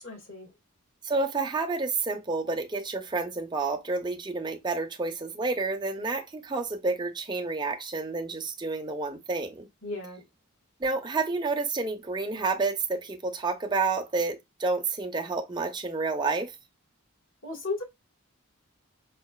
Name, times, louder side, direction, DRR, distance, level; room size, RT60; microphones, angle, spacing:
voice 1, 0.0-0.5 9.8-10.2 17.4-17.8, left 3 dB, 65° left, 1.9 m, -35 dB
voice 2, 1.0-9.7 10.8-16.5, right 3 dB, 20° right, 0.6 m, -29 dB
4.8 x 2.4 x 2.2 m
head